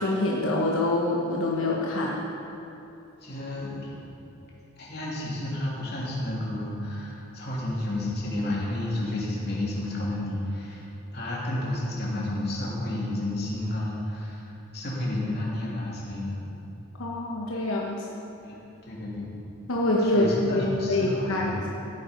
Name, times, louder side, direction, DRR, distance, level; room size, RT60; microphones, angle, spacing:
voice 1, 0.0-2.2 17.0-18.1 19.7-21.7, left 1 dB, 85° left, -2 dB, 1.2 m, -25 dB
voice 2, 3.2-4.3 4.8-10.9 11.1-16.4 18.4-18.6 18.9-19.3 20.0-21.6, left 1 dB, 50° left, -5 dB, 3.1 m, -31 dB
15.0 x 9.1 x 5.3 m, 2.8 s
head